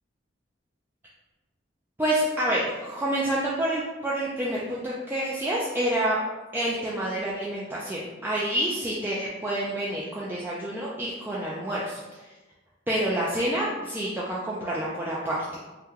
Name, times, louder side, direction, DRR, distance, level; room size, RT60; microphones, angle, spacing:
voice 1, 2.0-6.2 6.5-12.3 12.9-15.4, right 1 dB, 10° right, -6 dB, 0.3 m, -28 dB
2.8 x 2.1 x 3.6 m, 1.2 s
head